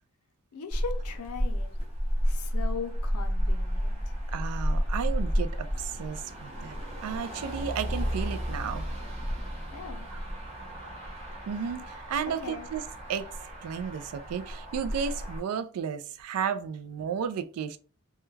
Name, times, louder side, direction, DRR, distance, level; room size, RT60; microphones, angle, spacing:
voice 1, 0.5-1.7 2.2-4.1 9.7-10.1 12.3-12.7, left 5 dB, 70° left, 0.5 m, -39 dB
Motor vehicle (road), 0.7-15.4, equal, 30° right, 0.7 m, -32 dB
voice 2, 4.3-6.8 7.0-8.9 10.1-10.2 11.5-12.8 13.1-17.8, right 7 dB, 70° right, 0.3 m, -33 dB
2.3 x 2.1 x 3.1 m
head